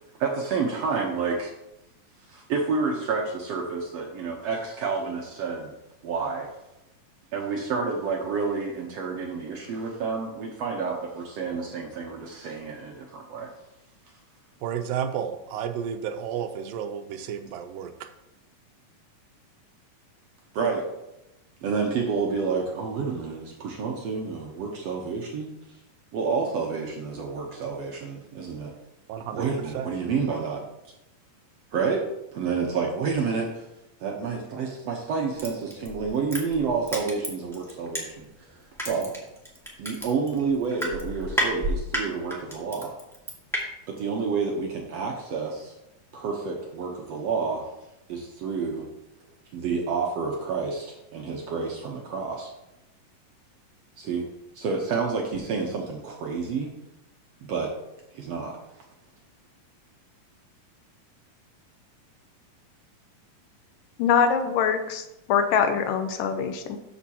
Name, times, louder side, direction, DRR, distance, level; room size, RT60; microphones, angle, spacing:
voice 1, 0.2-1.5 2.3-5.7 6.0-6.5 7.3-13.5 20.5-20.9 21.6-25.8 26.1-28.7 29.3-30.6 31.7-32.0 32.3-33.7 34.0-39.1 39.8-43.0 43.9-45.7 46.1-47.7 48.1-48.8 49.5-52.5 54.0-54.2 54.5-56.7 57.5-57.7 58.1-58.6, right 5 dB, 70° right, 0 dB, 1.6 m, -29 dB
voice 2, 14.6-18.1 29.1-29.5 29.7-29.9, right 8 dB, 90° right, 7 dB, 2.4 m, -32 dB
Crushing, 35.4-38.4 38.8-43.6 44.0-44.1, equal, ahead, 0.6 m, -31 dB
voice 3, 64.0-66.8, left 7 dB, 80° left, 7 dB, 2.3 m, -23 dB
13.0 x 6.1 x 2.9 m, 0.91 s
omnidirectional pair, 4.0 m